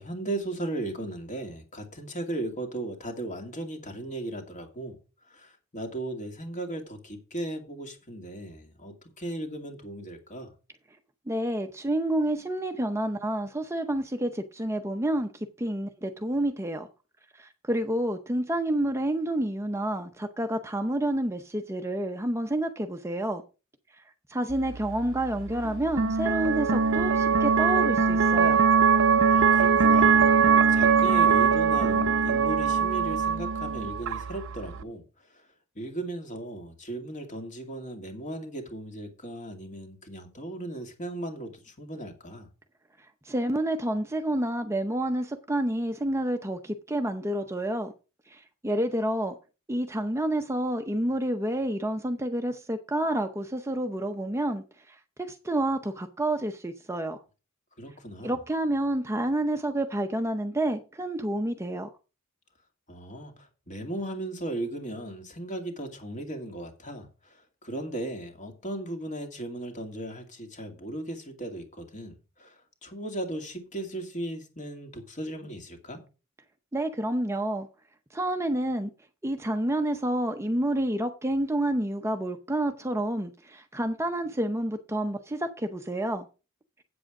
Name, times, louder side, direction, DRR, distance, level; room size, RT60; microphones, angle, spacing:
voice 1, 0.0-5.0 5.3-10.5 29.3-30.3 30.7-35.0 35.3-35.4 35.8-42.5 57.8-58.4 62.9-76.0, right 1 dB, 35° left, 2.3 m, -37 dB
voice 2, 11.3-16.9 17.3-23.4 24.0-24.1 24.3-28.6 43.2-47.9 48.3-49.4 49.7-57.2 58.2-61.9 76.7-77.7 78.1-78.9 79.2-86.3, right 1 dB, 15° right, 0.7 m, -29 dB
sound 1, 24.5-34.8, right 5 dB, 60° right, 0.6 m, -22 dB
8.5 x 7.6 x 4.8 m
head